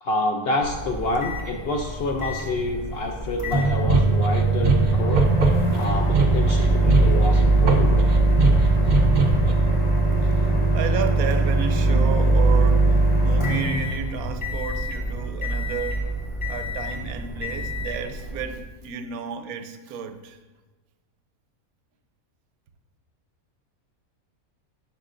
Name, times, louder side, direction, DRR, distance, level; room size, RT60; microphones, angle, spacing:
voice 1, 0.0-5.2 5.7-8.1, left 2 dB, 70° left, 3 dB, 0.5 m, -28 dB
Microwave oven, 0.6-18.6, right 2 dB, 25° left, 0.7 m, -22 dB
sound 1, 3.6-9.5, right 3 dB, 60° right, 0.5 m, -22 dB
voice 2, 10.2-16.1 16.5-20.4, right 6 dB, 85° right, 8 dB, 1.1 m, -33 dB
11.0 x 4.5 x 2.5 m, 1.3 s
omnidirectional pair, 1.5 m